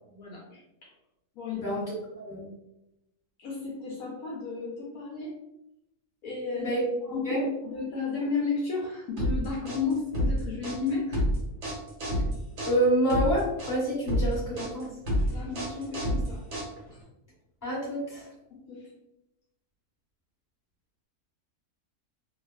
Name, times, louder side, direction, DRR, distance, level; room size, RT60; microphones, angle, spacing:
voice 1, 0.1-0.6 1.4-1.6 3.4-5.3 6.2-6.7 7.1-11.2 15.3-16.4 18.5-18.8, left 4 dB, 70° left, -4 dB, 1.0 m, -33 dB
sound 1, 9.2-17.0, equal, 55° right, 1.1 m, -29 dB
voice 2, 12.6-14.9 17.6-18.3, right 1 dB, 10° left, -7 dB, 1.3 m, -27 dB
2.6 x 2.3 x 2.3 m, 0.88 s
omnidirectional pair, 1.6 m